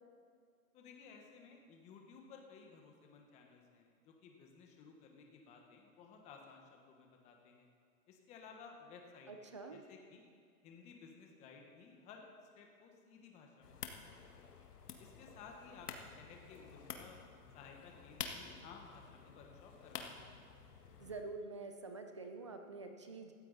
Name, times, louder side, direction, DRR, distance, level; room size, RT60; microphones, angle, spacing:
voice 1, 0.7-7.7 8.1-10.2 10.6-12.3 12.5-14.5 15.0-17.2 17.5-20.4, left 5 dB, 15° left, 2 dB, 1.2 m, -57 dB
voice 2, 9.3-9.8 21.0-23.3, right 3 dB, 20° right, 5 dB, 0.4 m, -47 dB
sound 1, 13.6-21.2, left 6 dB, 85° left, 1.8 m, -50 dB
17.0 x 14.5 x 4.1 m, 2.2 s
hypercardioid pair, 160°, 45 cm